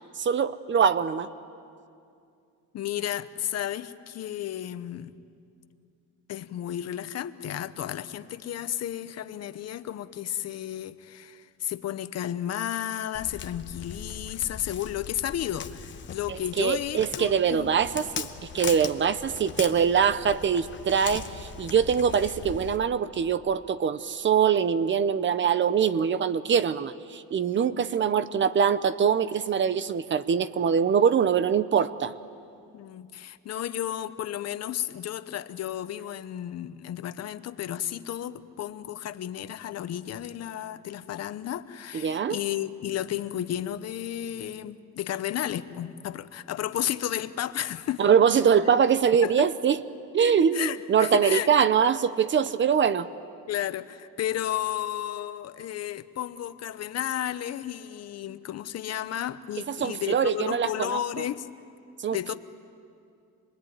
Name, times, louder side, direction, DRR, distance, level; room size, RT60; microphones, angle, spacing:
voice 1, 0.2-1.3 16.3-18.3 18.5-32.1 42.0-42.4 48.0-49.8 50.1-53.1 59.7-61.0 62.0-62.3, right 7 dB, 35° right, 15 dB, 0.6 m, -23 dB
voice 2, 2.7-5.1 6.3-17.7 27.5-27.8 32.7-48.0 49.2-49.5 50.5-51.5 53.5-61.5 62.1-62.3, left 11 dB, 50° left, 13 dB, 0.8 m, -33 dB
Walk footsteps, 13.1-22.8, left 7 dB, 35° left, 1.0 m, -40 dB
27.0 x 20.0 x 9.4 m, 2.4 s
cardioid pair, 145°, 33 cm